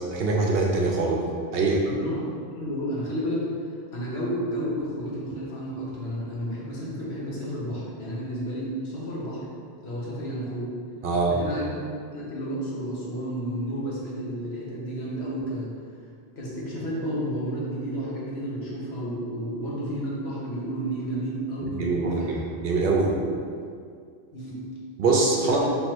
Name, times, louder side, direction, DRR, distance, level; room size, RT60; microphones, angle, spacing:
voice 1, 0.1-1.2 1.5-1.8 11.0-11.4 21.8-23.1 25.0-25.6, right 3 dB, 65° right, -2 dB, 0.9 m, -23 dB
voice 2, 1.8-2.2 2.6-3.4 3.9-9.4 9.8-10.7 11.3-11.7 12.1-15.7 16.4-22.4 23.1-23.2 24.3-24.6 25.4-25.7, equal, 75° left, -6 dB, 1.3 m, -31 dB
3.5 x 3.1 x 4.4 m, 2.2 s
omnidirectional pair, 1.1 m